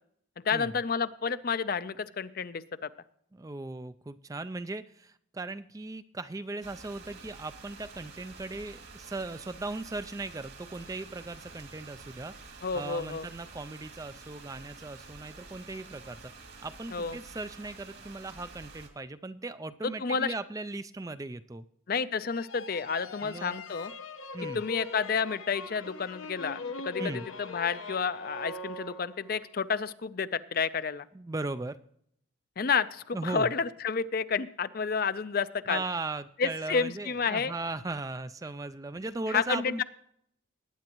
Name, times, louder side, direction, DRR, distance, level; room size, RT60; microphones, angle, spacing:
voice 1, 0.4-2.9 12.6-13.3 16.9-17.2 19.8-20.3 21.9-23.9 24.5-27.1 27.4-31.1 32.6-35.8 36.4-37.5 39.3-39.8, left 5 dB, 45° left, 14 dB, 0.5 m, -30 dB
voice 2, 3.3-16.3 16.6-21.6 23.2-23.6 24.3-24.6 27.0-27.3 31.1-31.8 33.1-33.5 35.7-39.8, right 2 dB, 15° right, 12 dB, 0.3 m, -38 dB
sound 1, 6.6-18.9, right 4 dB, 65° right, 2.4 m, -49 dB
sound 2, 22.3-29.5, left 3 dB, 85° left, 1.1 m, -42 dB
19.5 x 9.5 x 3.0 m, 0.70 s
head